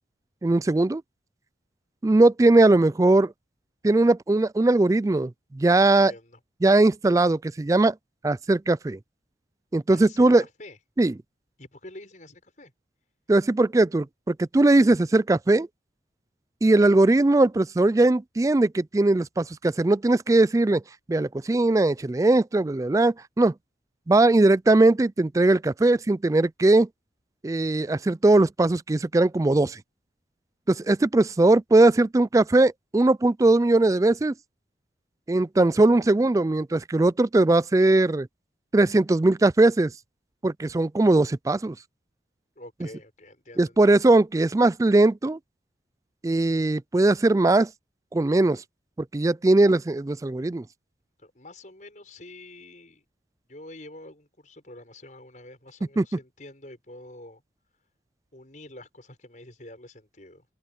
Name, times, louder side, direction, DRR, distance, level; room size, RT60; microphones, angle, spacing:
voice 1, 0.4-1.0 2.0-3.3 3.8-6.1 6.6-7.9 8.2-9.0 9.7-10.4 11.0-11.1 13.3-15.7 16.6-20.8 21.1-23.5 24.1-26.9 27.4-29.8 30.7-34.3 35.3-38.3 38.7-39.9 40.4-41.8 43.6-45.4 46.2-47.7 48.1-48.6 49.1-50.6 56.0-56.1, right 2 dB, 20° right, 0.3 m, -20 dB
voice 2, 5.9-6.4 9.9-10.8 11.6-12.7 42.6-44.0 51.2-53.0 53.5-57.4 58.3-60.5, left 1 dB, 45° left, 5.9 m, -46 dB
head